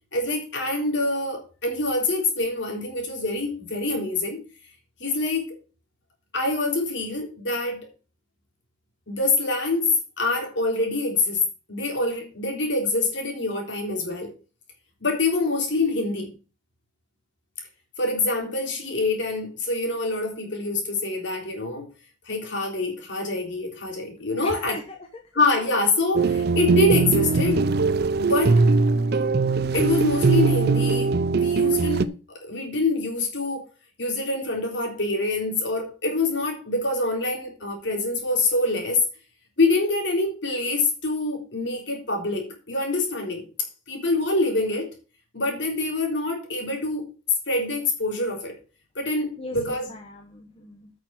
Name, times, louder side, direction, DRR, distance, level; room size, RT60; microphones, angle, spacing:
voice 1, 0.1-4.4 5.0-5.5 6.3-7.9 9.1-11.4 11.7-14.3 15.0-16.3 18.0-21.9 22.3-24.8 25.3-27.6 28.2-28.6 29.7-33.6 34.0-39.0 39.6-43.4 43.9-44.9 45.3-47.0 47.5-48.6 49.0-49.9, left 2 dB, 65° left, 3.7 m, -25 dB
voice 2, 24.4-25.0 49.4-50.9, left 2 dB, 30° left, 1.2 m, -39 dB
sound 1, 26.1-32.0, right 4 dB, 55° right, 0.5 m, -21 dB
8.8 x 6.4 x 5.9 m
head